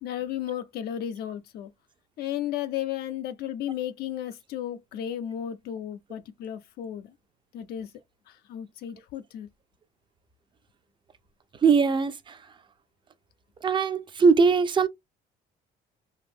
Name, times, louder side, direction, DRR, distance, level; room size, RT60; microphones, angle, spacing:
voice 1, 0.0-1.7 2.2-7.1 7.5-7.9 8.3-9.5, left 11 dB, 70° left, 0.4 m, -34 dB
voice 2, 11.6-12.4 13.6-14.9, right 5 dB, 30° right, 0.5 m, -21 dB
2.6 x 2.3 x 3.4 m
cardioid pair, 110°, 17 cm